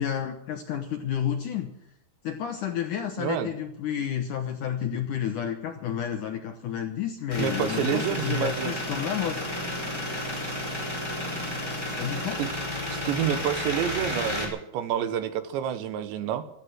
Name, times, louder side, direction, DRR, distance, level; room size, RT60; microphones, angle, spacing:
voice 1, 0.0-1.7 2.2-9.5 12.0-12.4, left 9 dB, 70° left, 6 dB, 1.9 m, -30 dB
voice 2, 3.2-3.5 7.4-8.7 12.4-12.5 13.1-16.4, right 9 dB, 85° right, 11 dB, 3.6 m, -28 dB
sound 1, 7.3-14.5, left 1 dB, 5° left, 4.5 m, -32 dB
16.0 x 14.0 x 6.3 m, 0.76 s
omnidirectional pair, 5.0 m